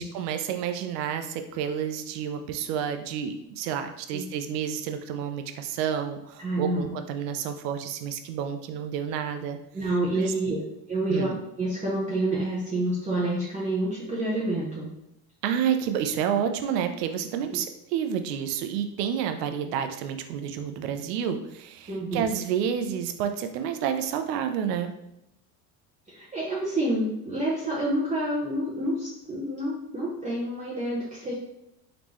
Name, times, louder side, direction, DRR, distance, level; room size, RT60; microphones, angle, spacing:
voice 1, 0.0-9.6 10.2-10.3 11.1-11.4 15.4-24.9, right 8 dB, 80° right, 7 dB, 0.7 m, -29 dB
voice 2, 6.4-6.9 9.7-10.6 10.9-11.3 11.6-14.9 21.9-22.3 26.1-31.3, right 1 dB, 15° right, -6 dB, 0.9 m, -28 dB
3.9 x 3.6 x 3.0 m, 0.85 s
supercardioid pair, 95°, 47 cm